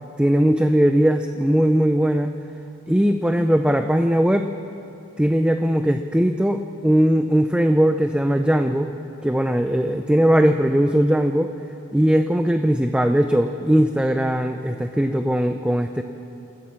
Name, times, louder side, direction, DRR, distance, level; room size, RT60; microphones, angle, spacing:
voice 1, 0.2-2.3 2.9-4.5 5.2-8.9 9.2-11.5 11.9-16.0, equal, 5° right, 7 dB, 0.4 m, -19 dB
28.0 x 14.0 x 7.3 m, 3.0 s
head